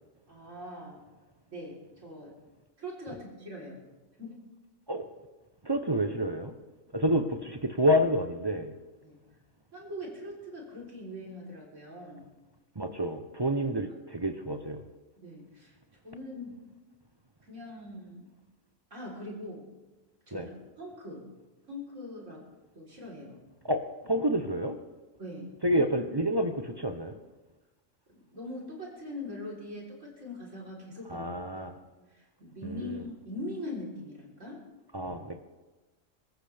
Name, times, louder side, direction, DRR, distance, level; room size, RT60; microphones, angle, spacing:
voice 1, 0.3-1.1 1.5-2.3 2.8-3.8 4.2-4.4 9.0-9.2 9.7-12.3 15.2-15.7 16.0-16.5 17.5-18.3 18.9-19.7 20.3-21.3 21.7-22.4 22.7-23.4 25.2-25.8 28.1-31.3 31.6-31.7 32.1-34.6, left 1 dB, 65° right, -3 dB, 4.1 m, -42 dB
voice 2, 5.6-6.5 6.9-8.7 12.8-14.8 20.3-20.5 23.6-24.8 25.6-27.2 31.1-31.7 32.6-33.0 34.9-35.4, equal, 25° right, 7 dB, 0.6 m, -29 dB
24.0 x 14.0 x 3.4 m, 1.2 s
omnidirectional pair, 1.4 m